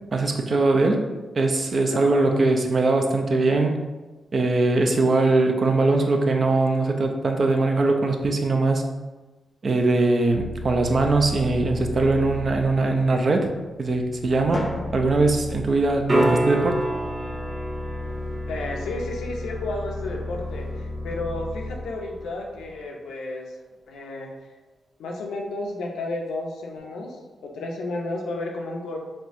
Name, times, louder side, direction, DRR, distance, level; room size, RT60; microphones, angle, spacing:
voice 1, 0.1-1.0 1.4-3.9 4.3-8.8 9.6-13.5 13.8-14.7 14.9-16.8, right 3 dB, 55° right, 4 dB, 0.4 m, -21 dB
voice 2, 1.9-2.3 18.5-23.6 23.9-24.3 25.0-27.2 27.4-29.0, left 2 dB, 85° left, 0 dB, 0.5 m, -32 dB
sound 1, 10.3-22.8, left 2 dB, 10° right, 1.1 m, -35 dB
Drum, 14.5-16.5, left 2 dB, 35° left, 0.6 m, -36 dB
sound 2, 16.1-22.1 26.8-26.9, right 1 dB, 40° right, 0.9 m, -30 dB
4.3 x 2.2 x 2.6 m, 1.2 s
supercardioid pair, 45°, 0 cm